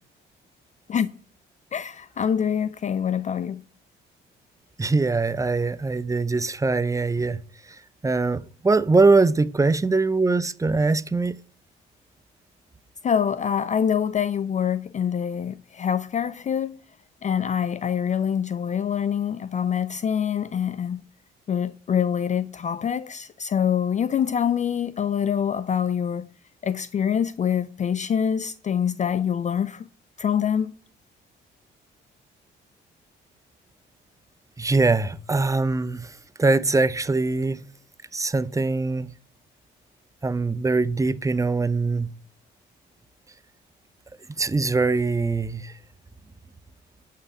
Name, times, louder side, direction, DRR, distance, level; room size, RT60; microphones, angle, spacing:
voice 1, 1.7-3.6 13.0-16.8 17.2-21.0 21.5-26.3 26.6-29.9 30.2-30.7, left 8 dB, 35° left, 0.4 m, -25 dB
voice 2, 4.8-7.4 8.0-11.3 34.6-36.1 36.4-37.6 38.1-39.1 40.2-42.1 44.4-45.6, right 3 dB, 15° right, 0.6 m, -22 dB
7.8 x 5.7 x 7.3 m
cardioid pair, 90°, 20 cm